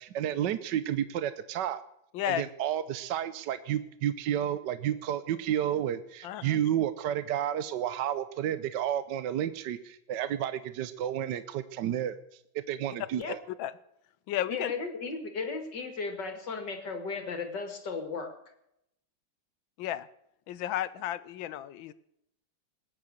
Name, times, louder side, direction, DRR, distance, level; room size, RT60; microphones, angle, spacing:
voice 1, 0.0-1.8 2.3-12.2 12.7-13.4, right 10 dB, 65° right, 13 dB, 1.3 m, -31 dB
voice 2, 2.1-2.5 6.2-6.6 13.6-13.7 14.3-14.7 19.8-20.1 20.5-21.9, left 12 dB, 70° left, 17 dB, 1.5 m, -33 dB
voice 3, 14.5-18.3, left 4 dB, 55° left, 6 dB, 2.6 m, -35 dB
20.5 x 9.7 x 6.5 m, 0.78 s
omnidirectional pair, 2.3 m